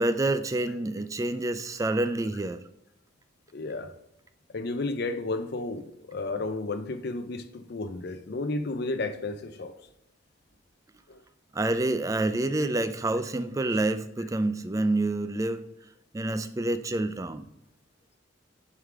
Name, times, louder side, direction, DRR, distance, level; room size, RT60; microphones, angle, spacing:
voice 1, 0.0-2.6 11.5-15.6 16.1-17.5, right 2 dB, 15° right, 0.3 m, -27 dB
voice 2, 3.5-3.9 4.5-9.8 11.1-11.2, left 2 dB, 55° left, 0.6 m, -32 dB
6.4 x 3.7 x 4.6 m
head